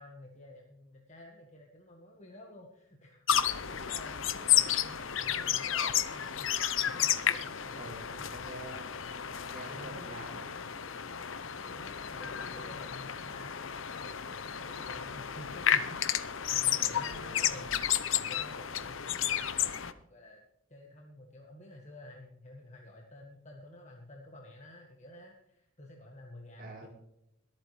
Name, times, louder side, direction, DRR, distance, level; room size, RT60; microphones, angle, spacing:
voice 1, 0.0-8.4 11.6-17.8 18.2-19.3 20.1-20.4 20.7-26.9, left 1 dB, 35° left, 0 dB, 1.6 m, -51 dB
sound 1, 3.3-19.9, left 10 dB, 75° left, 0.8 m, -32 dB
voice 2, 7.7-8.9 9.5-10.5 17.0-17.4 26.6-26.9, right 2 dB, 45° right, 0 dB, 4.2 m, -46 dB
22.5 x 9.0 x 3.3 m, 0.79 s
head